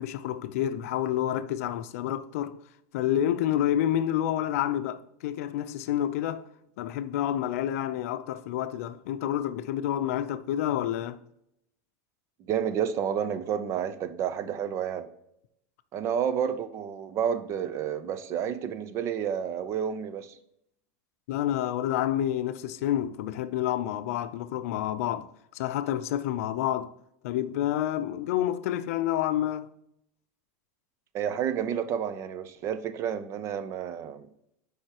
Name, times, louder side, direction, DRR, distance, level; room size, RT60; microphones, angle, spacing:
voice 1, 0.0-2.6 2.9-6.5 6.8-11.2 21.3-25.3 25.5-26.9 27.2-29.7, left 11 dB, 75° left, 0.5 m, -29 dB
voice 2, 12.5-15.1 15.9-20.3 31.1-34.3, right 8 dB, 35° right, 0.5 m, -30 dB
7.8 x 4.9 x 2.9 m
supercardioid pair, 140°, 8 cm